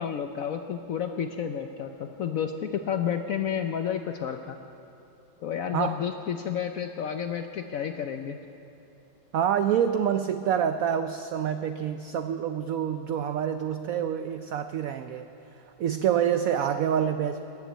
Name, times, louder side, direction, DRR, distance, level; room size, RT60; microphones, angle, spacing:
voice 1, 0.0-4.6 5.4-8.4, left 8 dB, 70° left, 6 dB, 0.8 m, -31 dB
voice 2, 9.3-15.3 15.8-17.4, right 9 dB, 85° right, 9 dB, 0.7 m, -27 dB
21.5 x 7.2 x 8.1 m, 2.9 s
omnidirectional pair, 2.0 m